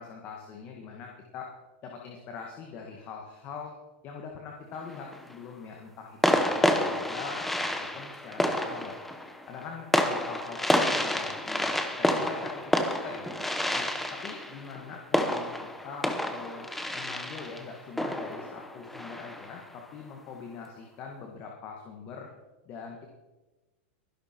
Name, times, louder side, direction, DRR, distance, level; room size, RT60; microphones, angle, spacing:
voice 1, 0.0-1.5 1.8-3.7 4.0-7.5 7.7-9.0 9.5-13.3 13.7-16.7 16.9-22.3 22.6-23.1, left 5 dB, 25° left, 1 dB, 1.7 m, -43 dB
sound 1, 4.7-5.3 6.2-19.6, left 1 dB, 5° left, 0.8 m, -29 dB
22.5 x 11.0 x 4.5 m, 1.1 s
supercardioid pair, 170°, 6 cm